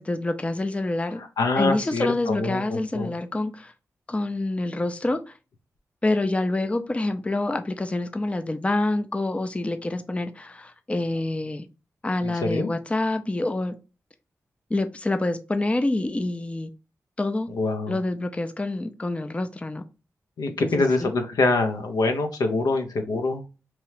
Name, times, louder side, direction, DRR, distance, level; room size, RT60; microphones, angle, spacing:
voice 1, 0.0-1.2 1.6-3.7 4.1-5.3 6.0-11.6 12.0-13.8 14.7-16.7 17.2-17.5 17.9-19.8 20.5-21.1, left 2 dB, 20° left, 0.4 m, -27 dB
voice 2, 1.4-3.1 12.2-12.7 17.5-18.0 20.4-23.5, left 3 dB, 85° left, 0.5 m, -25 dB
2.9 x 2.3 x 3.1 m
cardioid pair, 50°, 6 cm